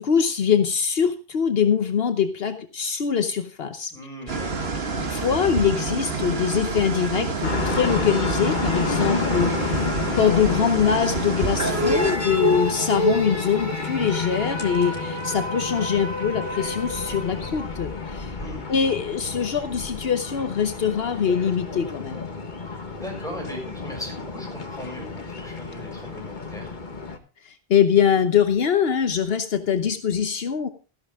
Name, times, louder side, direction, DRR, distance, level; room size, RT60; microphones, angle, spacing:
voice 1, 0.0-3.9 5.0-18.3 18.7-22.3 27.4-30.7, left 7 dB, 75° left, 9 dB, 1.1 m, -23 dB
voice 2, 3.9-4.9 18.4-18.6 22.6-26.7, equal, 5° left, -1 dB, 6.5 m, -38 dB
sound 1, 4.3-12.2, right 4 dB, 75° right, 1.8 m, -28 dB
sound 2, 7.4-27.2, left 4 dB, 50° left, 1.6 m, -31 dB
sound 3, 11.6-18.1, equal, 15° right, 1.9 m, -29 dB
14.0 x 11.0 x 3.5 m, 0.35 s
omnidirectional pair, 1.0 m